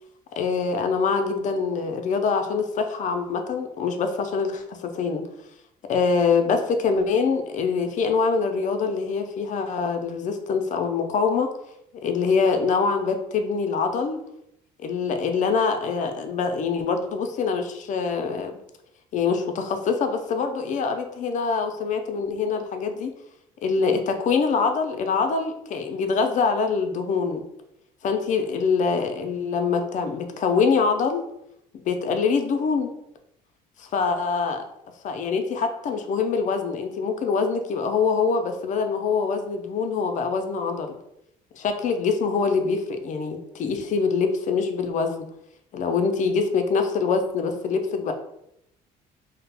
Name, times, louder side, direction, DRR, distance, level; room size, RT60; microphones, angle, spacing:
voice 1, 0.4-5.2 5.9-11.5 12.0-14.2 14.8-18.5 19.1-23.1 23.6-27.4 28.0-31.2 31.8-32.9 33.8-34.6 35.0-41.0 41.5-45.3 45.7-48.1, left 5 dB, 45° left, 6 dB, 0.4 m, -24 dB
2.4 x 2.0 x 3.3 m, 0.79 s
cardioid pair, 110°, 17 cm